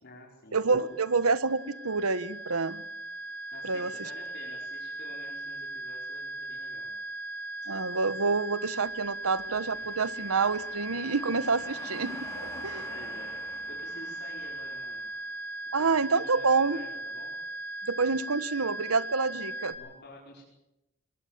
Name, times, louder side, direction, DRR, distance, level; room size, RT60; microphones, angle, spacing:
voice 1, 0.0-0.9 3.5-6.9 12.5-15.1 15.8-17.3 19.7-20.4, left 2 dB, 50° left, -2 dB, 5.1 m, -50 dB
voice 2, 0.5-2.8 3.6-3.9 7.7-12.3 12.6-12.8 15.7-16.8 17.9-19.7, right 4 dB, 85° right, 14 dB, 1.3 m, -27 dB
sound 1, 0.7-19.7, right 2 dB, 85° left, 6.6 m, -38 dB
sound 2, 8.7-15.4, left 2 dB, 15° left, 5.9 m, -49 dB
23.5 x 21.5 x 7.4 m, 0.91 s
head